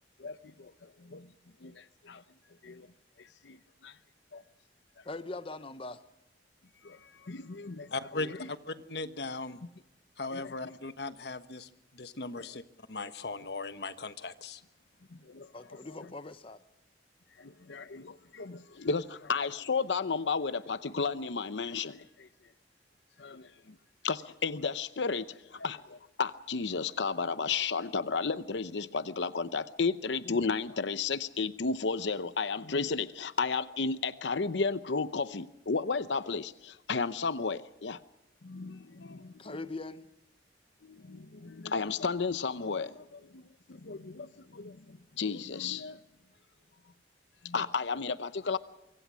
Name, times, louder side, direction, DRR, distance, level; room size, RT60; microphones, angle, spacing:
voice 1, 0.2-1.3 1.6-2.2 2.6-2.9 3.2-3.6 3.8-3.9 4.3-4.4 6.8-7.9 10.3-10.5 15.3-15.5 17.4-22.3 23.2-23.5 24.0-38.0 38.4-39.5 40.8-43.4 43.7-46.0 47.4-48.6, left 4 dB, 90° left, 0.8 m, -33 dB
voice 2, 5.0-6.0 15.5-16.6 39.4-40.1, left 2 dB, 30° left, 0.8 m, -41 dB
voice 3, 7.9-9.6 10.2-12.6 12.9-14.6, left 3 dB, 65° left, 1.3 m, -38 dB
24.5 x 24.5 x 6.3 m
head